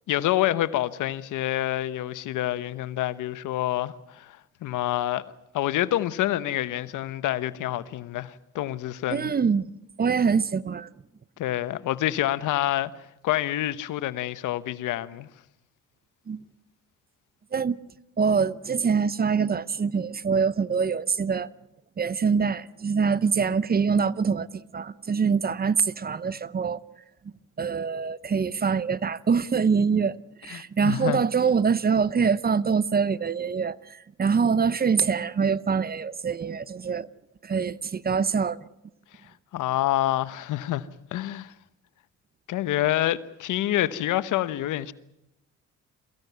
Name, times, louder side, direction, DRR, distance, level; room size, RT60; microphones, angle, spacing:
voice 1, 0.1-5.2 5.5-9.3 11.4-12.9 13.2-15.3 30.5-31.2 39.5-41.5 42.5-44.9, left 14 dB, 85° left, 1.1 m, -27 dB
voice 2, 9.1-9.7 10.0-10.9 16.3-16.4 17.5-17.8 18.2-21.5 22.0-26.8 27.6-37.1 37.4-38.6, right 6 dB, 30° right, 0.8 m, -24 dB
23.0 x 15.5 x 9.4 m
cardioid pair, 90°, 30 cm